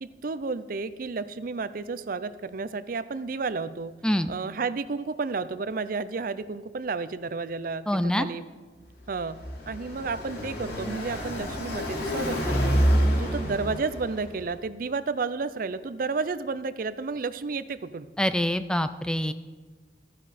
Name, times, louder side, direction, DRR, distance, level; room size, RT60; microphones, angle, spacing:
voice 1, 0.0-3.9 4.3-8.4 9.1-9.4 9.7-12.7 13.2-18.1, right 4 dB, 50° right, 14 dB, 0.5 m, -31 dB
voice 2, 4.0-4.3 7.9-8.3 18.2-19.3, left 1 dB, 5° left, 11 dB, 0.3 m, -25 dB
Car passing by, 8.9-14.5, equal, 60° left, 2.7 m, -27 dB
13.5 x 10.0 x 4.2 m, 1.4 s
head